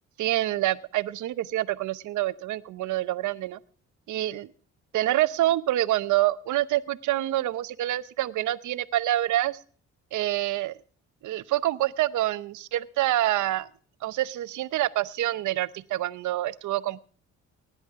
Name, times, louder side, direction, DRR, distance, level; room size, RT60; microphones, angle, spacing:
voice 1, 0.2-3.6 4.1-4.5 4.9-9.6 10.1-10.8 11.2-13.7 14.0-17.0, right 14 dB, 75° right, 15 dB, 0.8 m, -26 dB
19.5 x 10.5 x 3.6 m, 0.43 s
cardioid pair, 90°, 30 cm